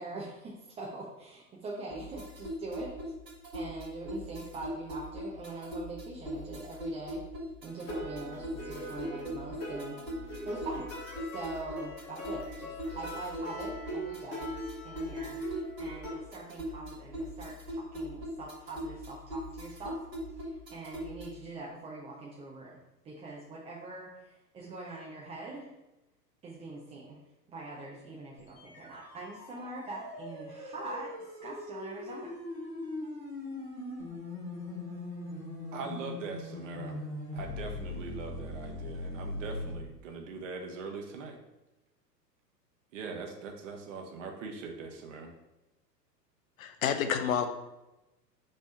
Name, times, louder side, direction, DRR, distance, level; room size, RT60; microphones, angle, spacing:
voice 1, 0.0-3.0 3.5-7.3 7.6-10.1 10.5-10.9 11.2-14.5 14.8-15.5 15.8-20.1 20.4-25.7 26.4-27.2 27.5-32.3, right 2 dB, 10° right, -5 dB, 0.6 m, -43 dB
sound 1, 1.9-21.5, equal, 80° right, 2.0 m, -40 dB
sound 2, 7.7-16.1, equal, 30° left, 1.7 m, -42 dB
sound 3, 28.4-39.7, left 2 dB, 75° left, 2.1 m, -40 dB
voice 2, 35.7-37.0 37.3-41.4 42.9-45.3, right 4 dB, 50° right, 2 dB, 1.2 m, -41 dB
voice 3, 46.6-47.5, left 8 dB, 55° left, 8 dB, 0.7 m, -29 dB
5.4 x 3.4 x 5.4 m, 0.98 s
figure-of-eight pair, 100°, 50 cm